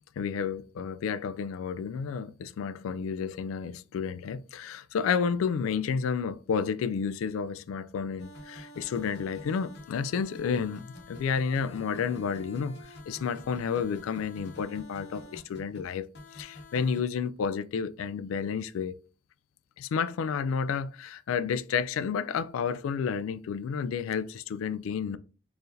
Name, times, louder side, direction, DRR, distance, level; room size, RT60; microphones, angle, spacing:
voice 1, 0.2-16.1 16.3-18.9 19.8-25.2, left 6 dB, 85° left, 0.3 m, -31 dB
sound 1, 8.2-17.0, left 1 dB, 60° left, 0.9 m, -47 dB
4.5 x 3.2 x 2.6 m
head